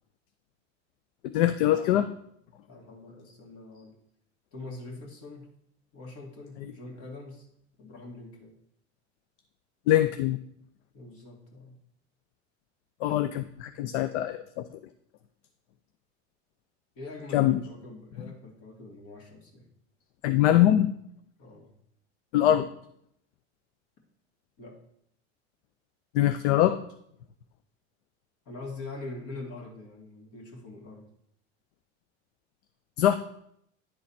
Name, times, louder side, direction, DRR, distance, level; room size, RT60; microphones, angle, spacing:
voice 1, 1.3-2.1 9.9-10.4 13.0-14.8 17.3-17.6 20.2-20.9 22.3-22.7 26.1-26.8 33.0-33.2, left 12 dB, 75° left, 10 dB, 0.5 m, -23 dB
voice 2, 2.7-4.0 4.5-5.5 5.9-7.5 7.8-8.5 10.9-11.8 17.0-19.7 21.4-21.7 24.6-24.8 28.5-31.1, left 2 dB, 60° left, 1 dB, 2.3 m, -43 dB
10.0 x 4.0 x 4.2 m, 0.72 s
hypercardioid pair, 90°, 34 cm